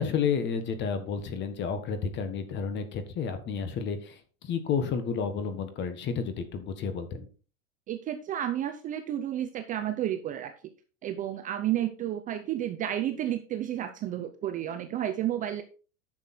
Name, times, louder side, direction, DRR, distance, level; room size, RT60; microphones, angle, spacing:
voice 1, 0.0-7.3, left 6 dB, 30° left, 10 dB, 1.6 m, -31 dB
voice 2, 7.9-10.5 11.0-15.6, right 11 dB, 20° right, 8 dB, 0.6 m, -31 dB
10.5 x 6.7 x 4.4 m, 0.37 s
supercardioid pair, 155°, 38 cm